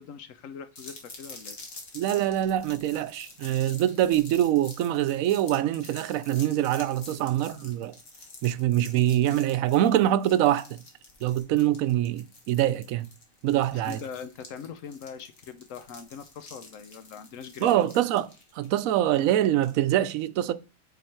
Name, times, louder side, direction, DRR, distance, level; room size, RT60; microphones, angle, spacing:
voice 1, 0.0-1.6 13.7-17.8, left 7 dB, 75° left, 1.1 m, -42 dB
sound 1, 0.8-19.8, left 3 dB, 55° left, 1.6 m, -48 dB
voice 2, 1.9-7.9 8.4-10.8 11.2-13.1 13.4-14.0 17.6-18.3 18.6-20.5, right 12 dB, 85° right, 1.0 m, -24 dB
8.0 x 3.6 x 4.4 m
omnidirectional pair, 1.4 m